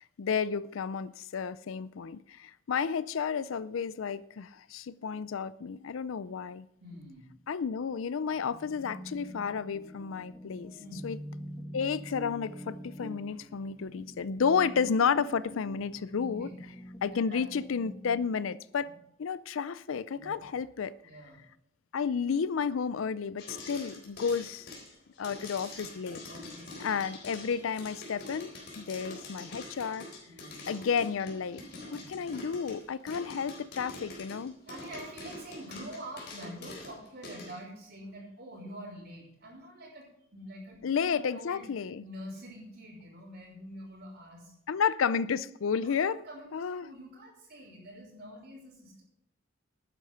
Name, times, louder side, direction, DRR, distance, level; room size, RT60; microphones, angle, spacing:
voice 1, 0.2-6.7 7.5-10.7 11.0-11.2 11.7-16.5 17.0-18.9 19.2-20.9 21.9-24.7 25.2-26.2 26.8-30.1 30.7-31.6 31.9-34.5 40.8-42.0 44.7-46.2 46.5-46.9, left 6 dB, 85° left, 0.4 m, -31 dB
voice 2, 6.8-7.3 10.8-11.0 16.3-16.7 17.3-17.4 18.8-18.9 20.1-20.4 21.0-21.4 26.3-26.8 30.3-30.6 31.9-32.1 34.7-41.6 42.0-44.5 45.8-46.5 46.8-49.0, equal, 55° right, 4.0 m, -46 dB
sound 1, 8.3-18.3, equal, 10° left, 1.8 m, -45 dB
sound 2, 23.4-37.6, left 2 dB, 60° left, 4.0 m, -45 dB
12.0 x 9.9 x 5.7 m
head